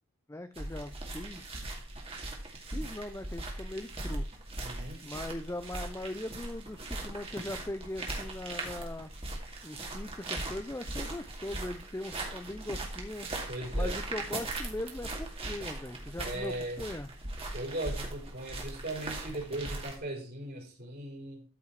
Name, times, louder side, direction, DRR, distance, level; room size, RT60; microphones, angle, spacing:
voice 1, 0.3-1.7 2.6-4.3 5.0-9.1 9.6-13.3 13.7-17.1, left 1 dB, 15° left, 9 dB, 0.5 m, -40 dB
sound 1, 0.5-19.9, right 2 dB, 30° right, 2.4 m, -39 dB
voice 2, 4.6-5.2 13.5-14.0 16.2-16.8 17.5-21.4, right 1 dB, 50° right, 0 dB, 4.3 m, -38 dB
13.5 x 5.5 x 4.7 m, 0.35 s
head